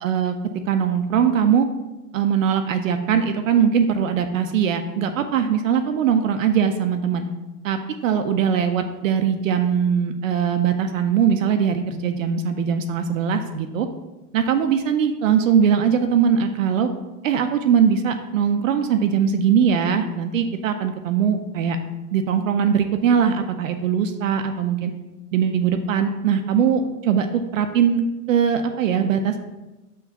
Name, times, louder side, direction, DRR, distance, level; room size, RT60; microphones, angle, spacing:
voice 1, 0.0-0.4 0.7-1.7 2.1-7.2 7.6-13.9 14.3-16.9 17.2-21.8 22.1-24.9 25.3-29.4, right 7 dB, 55° right, 7 dB, 0.6 m, -21 dB
5.9 x 3.1 x 5.6 m, 1.0 s
supercardioid pair, 155°, 47 cm